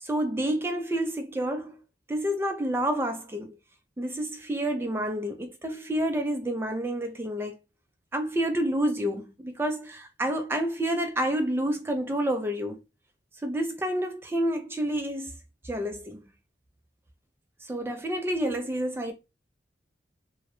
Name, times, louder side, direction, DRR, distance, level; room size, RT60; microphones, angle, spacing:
voice 1, 0.0-1.8 2.1-3.5 4.0-7.6 8.1-12.8 13.4-15.3 15.6-16.2 17.7-19.1, right 1 dB, 15° right, 0.3 m, -29 dB
2.3 x 2.0 x 2.8 m
head